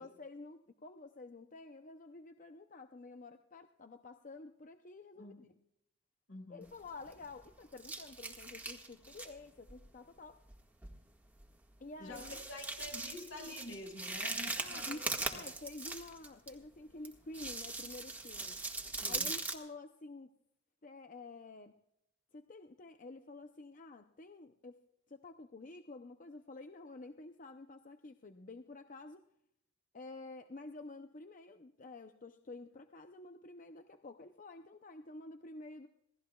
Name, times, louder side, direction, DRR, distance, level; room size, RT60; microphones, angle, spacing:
voice 1, 0.0-5.5 6.5-10.4 11.8-12.4 14.6-18.6 19.1-20.3 20.8-21.7 22.3-24.8 25.1-29.3 29.9-35.9, left 3 dB, 40° left, 7 dB, 0.7 m, -50 dB
voice 2, 5.2-5.5 6.3-6.7 12.0-15.5 19.0-19.3, left 2 dB, 70° left, 3 dB, 5.7 m, -48 dB
sound 1, 6.7-7.4 7.8-9.3 9.7-9.9 10.5-10.6 10.8-11.0 11.4-11.5 12.1-16.5 17.0-19.5, right 2 dB, 10° right, 1.7 m, -40 dB
27.0 x 18.5 x 2.3 m, 0.80 s
head